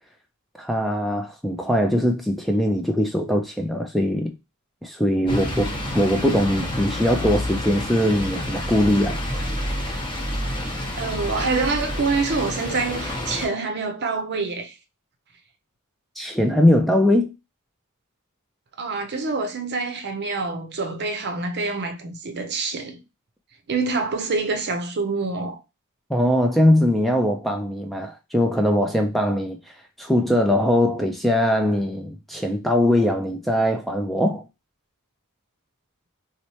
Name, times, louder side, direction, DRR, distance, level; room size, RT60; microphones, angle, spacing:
voice 1, 0.6-4.3 4.8-9.2 16.2-17.3 26.1-34.5, left 1 dB, ahead, 0.3 m, -21 dB
sound 1, 5.3-13.5, left 1 dB, 20° left, 1.0 m, -28 dB
voice 2, 11.0-14.7 18.8-23.0 23.7-25.6, right 4 dB, 50° right, 0.6 m, -26 dB
3.0 x 2.1 x 4.1 m
head